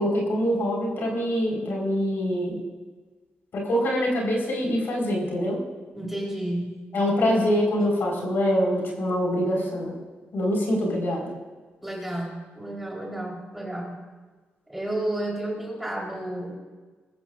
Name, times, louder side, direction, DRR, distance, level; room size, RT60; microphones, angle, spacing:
voice 1, 0.0-2.6 3.5-5.6 6.9-9.9 10.3-11.3, equal, 65° left, -1 dB, 4.5 m, -24 dB
voice 2, 6.0-7.1 11.8-14.0 14.7-16.6, right 1 dB, 5° right, -2 dB, 3.9 m, -32 dB
20.0 x 14.5 x 2.5 m, 1.4 s
cardioid pair, 105°, 4 cm